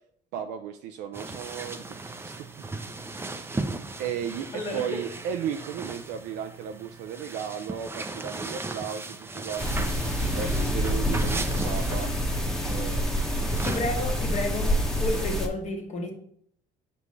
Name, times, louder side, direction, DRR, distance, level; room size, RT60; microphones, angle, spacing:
voice 1, 0.3-2.7 4.0-9.9 10.3-12.1 12.7-13.2, right 8 dB, 90° right, 6 dB, 0.5 m, -35 dB
sound 1, 1.1-13.8, right 3 dB, 15° right, 0.6 m, -37 dB
sound 2, 9.6-15.5, equal, 5° left, 1.1 m, -27 dB
voice 2, 13.6-14.7 15.0-16.1, left 2 dB, 45° left, 2 dB, 1.5 m, -31 dB
8.0 x 5.3 x 3.2 m, 0.66 s
cardioid pair, 110°, 17 cm